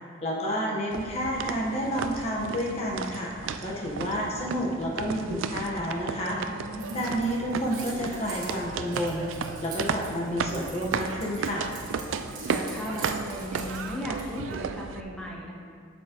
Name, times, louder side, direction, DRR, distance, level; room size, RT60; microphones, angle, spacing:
voice 1, 0.2-3.3 3.6-6.4 6.9-11.7, equal, 30° left, -3 dB, 1.1 m, -30 dB
sound 1, 0.9-15.0, right 5 dB, 75° right, 0.4 m, -34 dB
voice 2, 6.5-7.1 12.3-15.5, equal, 5° left, -3 dB, 0.9 m, -36 dB
Keys jangling, 6.8-14.5, right 4 dB, 40° right, 1.8 m, -44 dB
8.2 x 7.3 x 3.0 m, 2.1 s
head